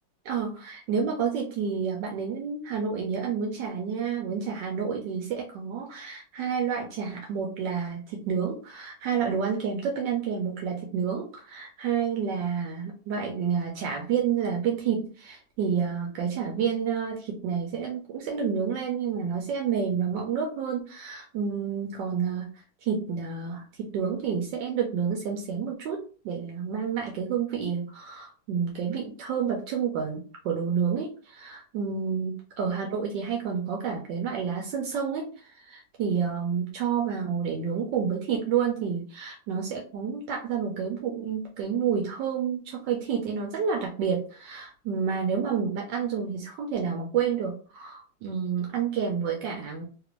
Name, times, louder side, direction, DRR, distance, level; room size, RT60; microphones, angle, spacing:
voice 1, 0.3-22.5 22.8-49.9, right 7 dB, 75° right, 1 dB, 1.3 m, -29 dB
3.3 x 2.5 x 3.0 m, 0.38 s
omnidirectional pair, 2.0 m